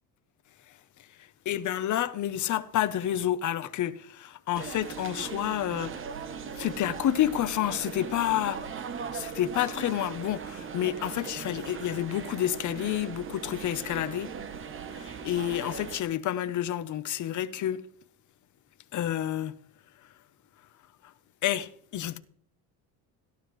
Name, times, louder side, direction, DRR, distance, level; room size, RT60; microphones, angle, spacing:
voice 1, 1.5-5.9 6.6-8.7 9.1-14.3 15.0-17.8 18.9-19.5 21.4-22.2, left 12 dB, 50° left, 0.9 m, -29 dB
sound 1, 4.5-16.0, right 6 dB, 35° right, 1.0 m, -39 dB
14.5 x 12.0 x 3.2 m
cardioid pair, 120°, 37 cm